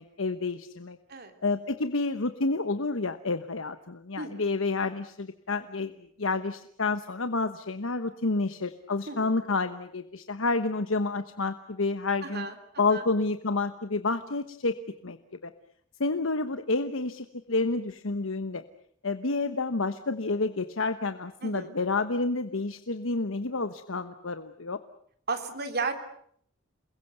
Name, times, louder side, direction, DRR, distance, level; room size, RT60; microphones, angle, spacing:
voice 1, 0.0-1.0 1.4-5.9 6.2-12.5 12.8-14.7 15.0-15.2 15.4-15.5 16.0-18.6 19.0-24.8, left 3 dB, 70° left, 10 dB, 1.1 m, -29 dB
voice 2, 4.2-4.5 9.1-9.3 12.2-12.5 12.9-13.0 21.4-21.7 25.3-25.9, right 4 dB, 50° right, 6 dB, 3.4 m, -34 dB
28.5 x 21.5 x 8.0 m, 0.66 s
head